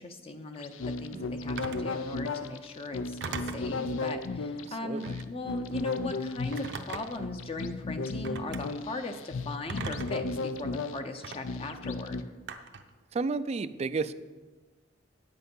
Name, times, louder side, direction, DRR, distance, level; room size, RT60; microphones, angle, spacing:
voice 1, 0.0-12.2, left 2 dB, 30° left, 6 dB, 0.6 m, -39 dB
sound 1, 0.6-12.2, left 3 dB, 90° left, 0.5 m, -35 dB
Telephone, 1.6-1.9 3.2-3.7 5.0-5.3 6.5-7.3 8.2-8.6 9.7-10.3 11.2-11.4 12.5-12.9, right 4 dB, 65° right, 0.7 m, -38 dB
voice 2, 4.8-5.2 13.1-14.1, right 4 dB, 35° right, 14 dB, 0.3 m, -32 dB
9.3 x 7.9 x 5.4 m, 1.3 s
head